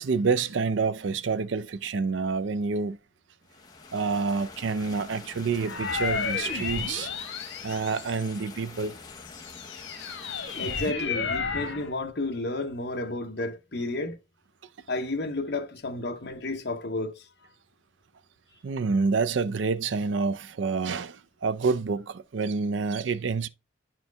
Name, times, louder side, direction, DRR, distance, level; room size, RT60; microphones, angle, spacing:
voice 1, 0.0-3.0 3.9-7.1 7.6-8.9 10.1-10.2 18.6-23.5, right 4 dB, 75° right, 0.5 m, -28 dB
sound 1, 3.4-10.9, left 4 dB, 20° left, 0.7 m, -46 dB
sound 2, 5.6-8.5 9.1-11.9, left 5 dB, 85° left, 1.2 m, -32 dB
voice 2, 10.6-14.2 14.9-17.3, left 2 dB, 60° left, 1.0 m, -32 dB
10.5 x 4.5 x 3.4 m
head